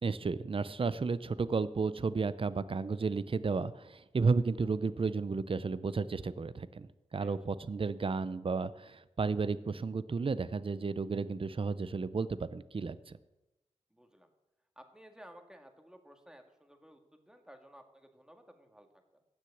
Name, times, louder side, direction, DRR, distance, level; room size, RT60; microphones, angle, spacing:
voice 1, 0.0-13.1, right 4 dB, 45° right, 16 dB, 0.6 m, -33 dB
voice 2, 13.9-14.3 14.8-19.0, equal, 5° right, 5 dB, 1.8 m, -56 dB
16.0 x 6.2 x 8.5 m, 1.0 s
wide cardioid pair, 75°, 12 cm